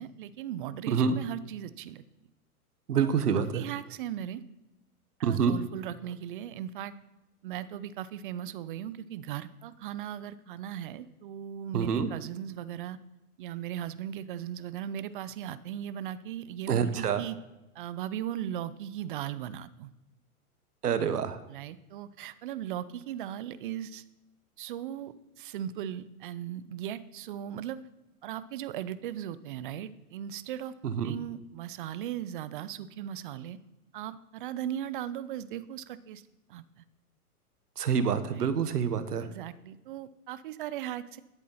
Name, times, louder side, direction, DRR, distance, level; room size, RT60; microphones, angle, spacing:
voice 1, 0.0-2.0 3.0-4.4 5.2-6.9 7.4-13.0 13.4-17.4 17.8-19.9 21.5-24.0 24.6-27.8 28.2-30.7 31.0-33.6 33.9-36.2 36.5-36.6 38.3-38.5 39.3-41.2, right 10 dB, 35° right, 16 dB, 0.5 m, -38 dB
voice 2, 2.9-3.6 5.2-5.5 11.7-12.1 16.7-17.2 20.8-21.4 30.8-31.1 37.8-39.3, right 7 dB, 85° right, 12 dB, 1.3 m, -27 dB
11.0 x 8.4 x 5.6 m, 0.96 s
hypercardioid pair, 135°, 45 cm